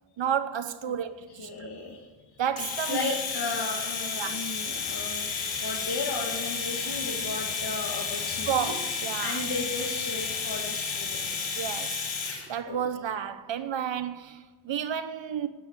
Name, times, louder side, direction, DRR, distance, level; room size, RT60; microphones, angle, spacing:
voice 1, 0.2-1.7 2.4-3.2 4.2-4.4 8.5-9.4 11.6-12.1 12.5-15.5, right 8 dB, 65° right, 1.0 m, -31 dB
voice 2, 1.4-2.1 2.9-5.3 5.6-8.8 9.2-11.5 12.6-12.8, left 3 dB, 50° left, 2.4 m, -35 dB
Domestic sounds home sounds, 2.6-12.4, left 5 dB, 85° left, 5.2 m, -32 dB
12.0 x 10.0 x 8.2 m
supercardioid pair, 40°, 48 cm